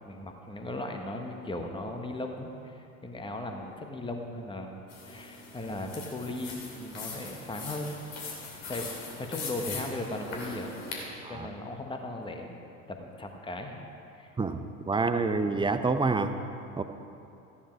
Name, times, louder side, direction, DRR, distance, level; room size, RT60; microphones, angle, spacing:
voice 1, 0.0-8.0 8.7-8.9 9.2-10.8 11.3-12.6 12.9-13.8 14.2-14.3, left 2 dB, 15° left, 3 dB, 1.4 m, -37 dB
sound 1, 4.9-11.0, left 4 dB, 55° left, 3.0 m, -41 dB
voice 2, 14.9-16.4 16.8-16.9, right 3 dB, 15° right, 9 dB, 0.7 m, -27 dB
14.0 x 10.0 x 4.6 m, 2.7 s
hypercardioid pair, 65°, 39 cm